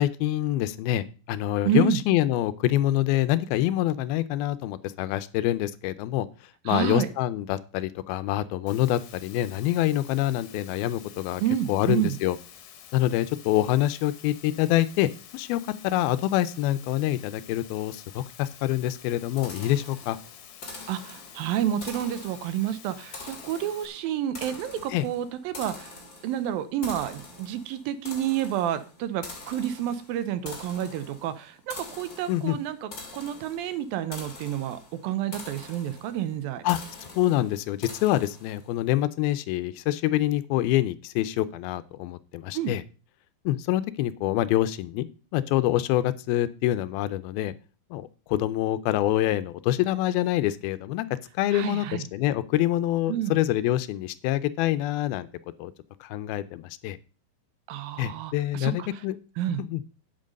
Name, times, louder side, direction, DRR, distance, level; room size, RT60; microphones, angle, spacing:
voice 1, 0.0-6.3 6.7-11.4 11.7-12.4 12.9-20.2 24.9-25.1 32.3-32.6 36.6-42.8 43.5-45.1 45.3-47.5 47.9-51.1 51.4-55.3 55.6-55.7 56.0-57.0 58.0-59.2 59.6-59.8, left 14 dB, 85° left, 14 dB, 2.5 m, -26 dB
voice 2, 1.6-2.0 6.7-7.1 11.4-12.2 20.9-25.9 26.2-36.6 42.5-42.7 51.5-52.1 53.1-53.4 57.7-59.0 59.4-59.6, right 11 dB, 75° right, 12 dB, 2.5 m, -29 dB
Water, 8.7-23.9, left 9 dB, 65° left, 2.4 m, -49 dB
sound 1, 19.4-38.7, left 3 dB, 30° left, 2.2 m, -45 dB
9.0 x 7.7 x 5.2 m, 0.35 s
omnidirectional pair, 4.3 m